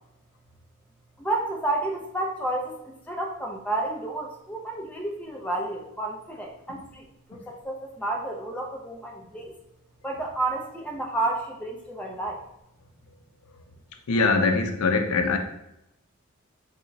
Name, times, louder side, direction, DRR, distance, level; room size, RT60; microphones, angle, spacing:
voice 1, 1.2-9.5 10.0-12.4, right 2 dB, 5° left, 0.4 m, -31 dB
voice 2, 14.1-15.4, left 4 dB, 85° left, 0.4 m, -23 dB
3.5 x 2.0 x 3.8 m
head